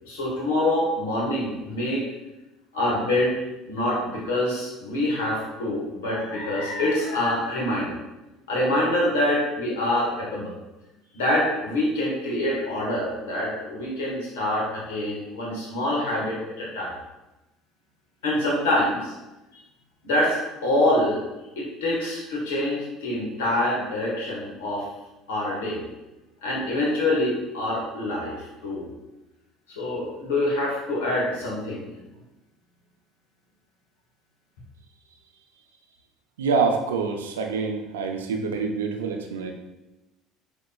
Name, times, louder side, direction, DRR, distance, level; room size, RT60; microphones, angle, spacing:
voice 1, 0.0-2.0 2.7-3.3 3.7-8.0 8.5-10.6 11.1-16.9 18.2-19.1 20.0-21.2 21.6-24.9 25.3-25.8 26.4-28.9 29.8-31.9, left 1 dB, 85° left, -4 dB, 1.0 m, -25 dB
voice 2, 36.4-39.5, right 4 dB, 85° right, 4 dB, 0.4 m, -26 dB
4.9 x 2.9 x 2.3 m, 1.0 s
hypercardioid pair, 75°, 0 cm